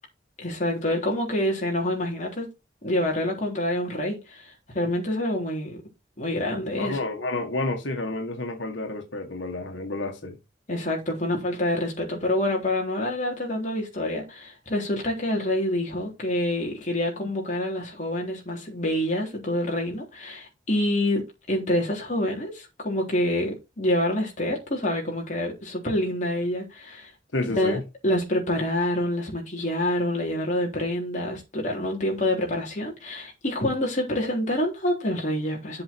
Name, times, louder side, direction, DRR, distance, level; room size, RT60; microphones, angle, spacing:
voice 1, 0.4-2.5 2.8-5.8 6.2-7.0 10.7-27.1 27.5-27.8 28.0-35.8, left 1 dB, 40° left, 3.7 m, -27 dB
voice 2, 6.8-10.4 27.3-27.8, left 2 dB, 90° left, 1.9 m, -30 dB
7.7 x 6.6 x 4.6 m
head